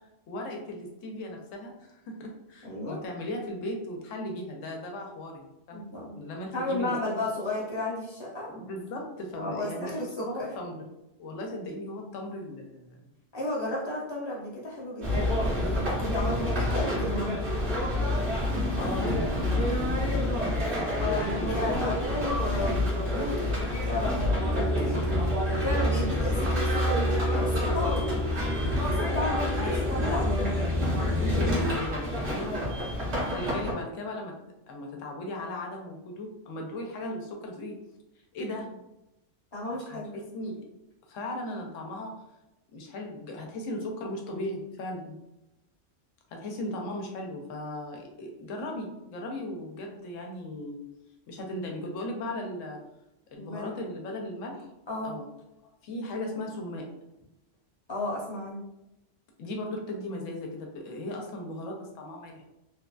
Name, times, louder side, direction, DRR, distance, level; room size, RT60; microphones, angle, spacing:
voice 1, 0.3-5.8 6.2-7.3 8.5-10.9 11.2-13.0 18.7-21.8 31.2-32.6 33.2-34.3 34.7-37.7 38.3-38.8 39.9-40.6 41.1-42.1 42.7-45.2 46.3-50.8 51.3-52.8 53.3-54.7 55.0-55.3 55.6-56.8 59.4-62.5, left 1 dB, 85° left, 1 dB, 1.0 m, -37 dB
voice 2, 2.6-3.0 5.7-6.2 6.5-8.5 9.3-10.5 13.3-17.4 21.0-25.0 25.6-28.1 28.8-30.5 32.4-32.7 39.5-40.1 46.5-46.6 53.4-53.7 54.9-55.2 57.9-58.6, left 1 dB, 25° left, -5 dB, 0.7 m, -33 dB
sound 1, 15.0-33.7, left 1 dB, 65° right, 1.2 m, -29 dB
sound 2, 24.4-31.7, left 1 dB, 45° right, 0.9 m, -29 dB
3.0 x 2.4 x 2.2 m, 0.92 s
omnidirectional pair, 1.3 m